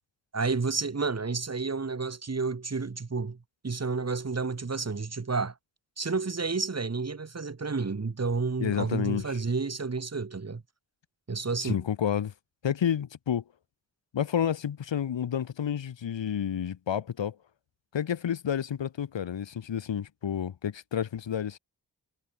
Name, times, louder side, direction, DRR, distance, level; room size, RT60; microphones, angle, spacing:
voice 1, 0.3-3.4 3.6-5.5 6.0-10.6 11.3-11.8, right 4 dB, 35° right, 1.9 m, -30 dB
voice 2, 8.6-9.4 11.6-12.3 12.6-13.4 14.1-17.4 17.9-21.6, left 9 dB, 90° left, 1.9 m, -30 dB
cardioid pair, 50°, 43 cm